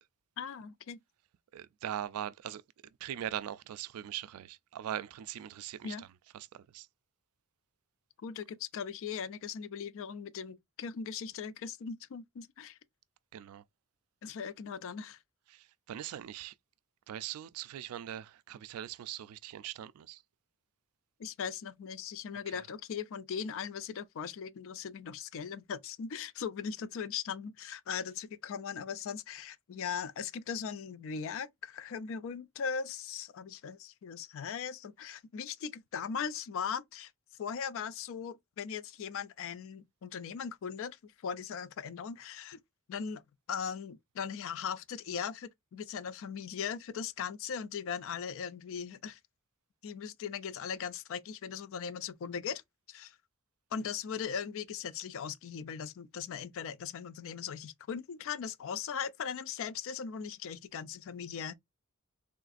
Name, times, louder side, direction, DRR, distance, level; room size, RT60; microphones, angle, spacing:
voice 1, 0.4-1.0 5.8-6.0 8.2-12.8 14.2-15.2 21.2-37.1 37.4-42.6 42.9-43.2 43.5-49.2 49.8-52.6 52.9-53.2 53.7-61.5, left 7 dB, 65° left, 0.4 m, -39 dB
voice 2, 1.5-2.6 3.0-6.1 6.3-6.9 13.3-13.6 15.5-16.5 17.1-20.2, right 11 dB, 80° right, 0.3 m, -41 dB
3.6 x 2.4 x 2.3 m
head